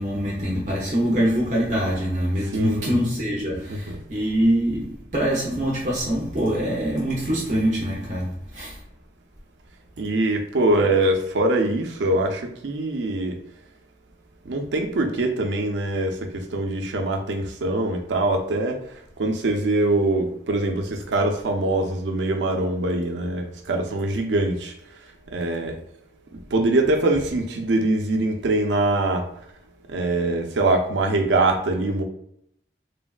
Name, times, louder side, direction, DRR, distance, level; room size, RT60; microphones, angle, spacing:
voice 1, 0.0-8.8, equal, 45° right, 0.6 m, -24 dB
voice 2, 2.5-3.0 3.7-4.0 10.0-13.4 14.5-18.8 19.2-24.7 25.3-25.7 26.5-29.3 29.9-32.0, right 2 dB, 90° right, 0.5 m, -23 dB
3.2 x 2.2 x 2.4 m
head